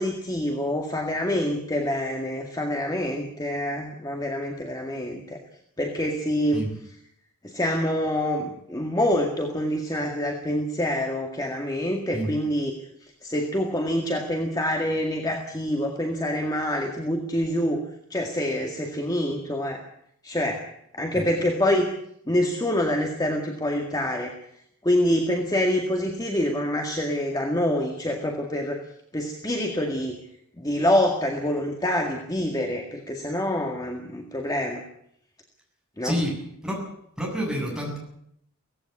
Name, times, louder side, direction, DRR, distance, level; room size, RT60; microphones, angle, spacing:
voice 1, 0.0-5.4 5.8-6.6 7.4-12.7 13.2-17.8 18.1-19.8 20.2-20.6 21.0-21.9 22.3-24.3 24.8-28.8 29.1-30.2 30.6-34.8 36.0-36.1, left 1 dB, 20° left, 2 dB, 2.0 m, -26 dB
voice 2, 36.0-36.8 37.2-38.0, equal, 5° right, -2 dB, 7.7 m, -28 dB
17.5 x 16.5 x 9.8 m, 0.73 s
head